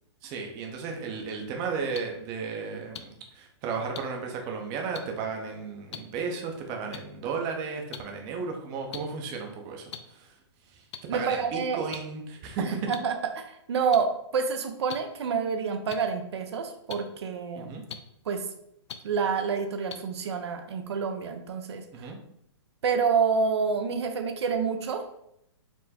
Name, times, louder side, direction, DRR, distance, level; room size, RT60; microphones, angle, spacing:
voice 1, 0.2-10.4 10.7-10.8 11.1-12.9 17.6-17.8 21.9-22.2, right 5 dB, 25° right, 2 dB, 0.6 m, -34 dB
sound 1, 1.9-2.0 2.9-3.0 4.0-4.1 4.9-5.0 5.9-6.0 6.9-7.0 7.9-8.0 8.9-9.0 9.9-10.0 10.9-11.0 11.9-12.0 12.9-13.0 13.9-14.0 14.9-15.0 15.9-16.0 16.9-17.0 17.9-18.0 18.9-19.0 19.9-20.0, left 8 dB, 70° left, 0.5 m, -37 dB
voice 2, 11.1-11.8 12.6-17.7 18.3-18.5 19.0-22.1 22.8-25.2, right 5 dB, 70° right, 6 dB, 0.6 m, -28 dB
4.4 x 2.1 x 4.1 m, 0.76 s
hypercardioid pair, 145°, 15 cm